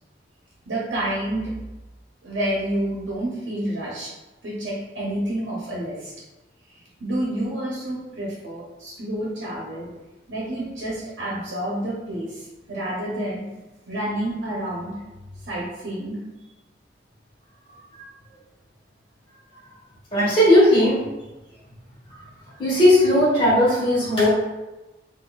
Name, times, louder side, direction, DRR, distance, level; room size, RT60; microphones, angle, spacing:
voice 1, 0.7-1.5 2.2-4.1 4.4-6.1 7.0-9.9 10.3-13.4 13.9-15.0 15.4-16.2, right 1 dB, 75° right, -6 dB, 0.9 m, -29 dB
voice 2, 20.1-21.0 22.6-24.3, left 1 dB, 30° left, -7 dB, 1.3 m, -17 dB
4.2 x 2.6 x 2.4 m, 1.1 s
head